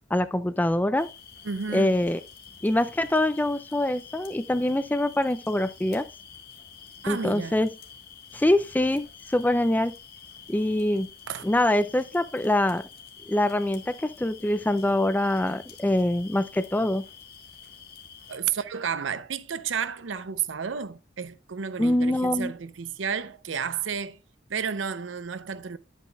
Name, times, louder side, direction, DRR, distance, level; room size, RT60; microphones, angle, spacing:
voice 1, 0.1-1.1 1.7-2.2 2.6-6.1 7.1-7.7 8.3-9.9 10.5-11.1 11.4-12.8 13.3-17.0 21.8-22.5, left 1 dB, 10° left, 0.4 m, -24 dB
sound 1, 1.0-18.4, left 7 dB, 55° left, 1.5 m, -48 dB
voice 2, 1.4-1.9 7.0-7.5 11.3-11.5 18.3-24.2 24.5-25.8, right 7 dB, 85° right, 0.6 m, -31 dB
10.5 x 8.3 x 2.3 m
head